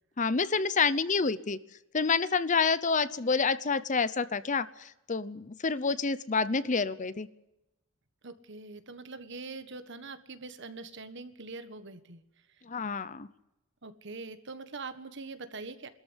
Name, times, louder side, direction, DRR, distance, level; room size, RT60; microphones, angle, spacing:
voice 1, 0.2-1.6 1.9-7.3 12.7-13.3, left 5 dB, 35° left, 16 dB, 0.7 m, -28 dB
voice 2, 8.2-12.2 13.8-15.9, right 3 dB, 60° right, 11 dB, 1.5 m, -43 dB
22.0 x 13.5 x 9.8 m, 0.91 s
head